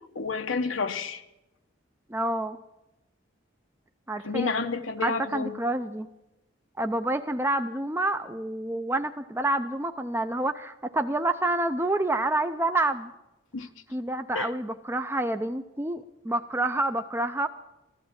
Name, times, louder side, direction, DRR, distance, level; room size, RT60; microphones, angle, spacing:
voice 1, 0.1-1.2 4.2-5.5 13.5-13.7 14.3-14.5, left 4 dB, 80° left, 1.0 m, -30 dB
voice 2, 2.1-2.6 4.1-4.6 5.0-6.1 6.8-13.1 13.9-17.5, right 2 dB, 10° right, 0.5 m, -28 dB
15.0 x 12.5 x 7.3 m
head